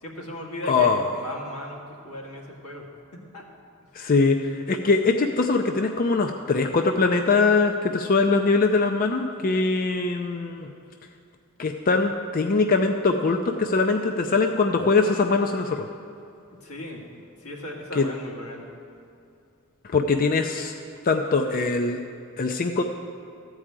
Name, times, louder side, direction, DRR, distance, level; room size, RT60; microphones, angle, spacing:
voice 1, 0.0-2.9 3.3-3.4 16.6-17.0 17.4-18.6, left 1 dB, 85° left, -2 dB, 2.1 m, -37 dB
voice 2, 0.6-1.1 3.9-10.7 11.6-15.9 18.0-18.1 19.9-20.7 21.0-22.0 22.4-22.8, left 4 dB, 40° left, 4 dB, 0.5 m, -22 dB
14.0 x 4.8 x 8.9 m, 2.6 s
head